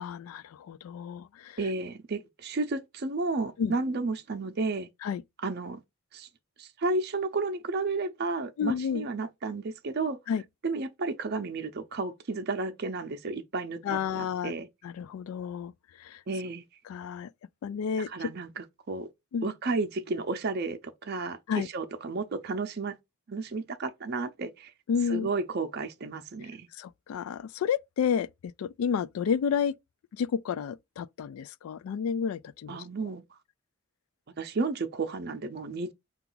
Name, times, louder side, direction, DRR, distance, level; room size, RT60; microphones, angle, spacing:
voice 1, 0.0-1.6 3.6-3.7 5.0-5.2 8.6-9.1 10.3-10.4 13.8-14.5 14.8-15.7 16.0-16.2 16.9-17.3 17.6-18.3 19.3-19.5 21.5-21.7 24.9-25.3 26.7-29.7 30.1-32.8, left 7 dB, 85° left, 0.3 m, -31 dB
voice 2, 1.6-4.9 5.4-5.8 6.1-6.3 6.6-10.2 10.6-14.7 16.3-16.6 18.1-19.1 19.4-23.0 23.3-24.7 25.1-26.7 32.7-33.2 34.4-35.9, right 3 dB, 50° right, 0.5 m, -32 dB
5.7 x 2.4 x 3.8 m
head